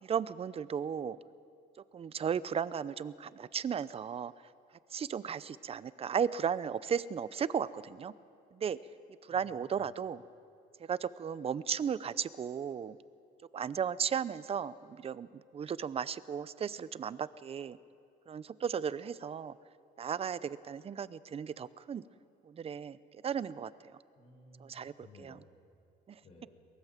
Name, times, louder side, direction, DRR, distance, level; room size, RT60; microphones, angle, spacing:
voice 1, 0.0-1.2 1.9-4.3 4.9-8.1 8.5-8.8 9.3-10.2 10.8-13.0 13.5-17.8 18.3-19.6 20.0-22.0 22.4-23.0 23.2-23.7 24.6-24.9 25.2-25.3 26.1-26.2, right 7 dB, 35° right, 17 dB, 0.7 m, -35 dB
voice 2, 9.3-9.9 24.1-25.4 26.2-26.5, left 2 dB, 45° left, -5 dB, 6.0 m, -57 dB
23.5 x 20.5 x 7.5 m, 2.6 s
cardioid pair, 110°, 17 cm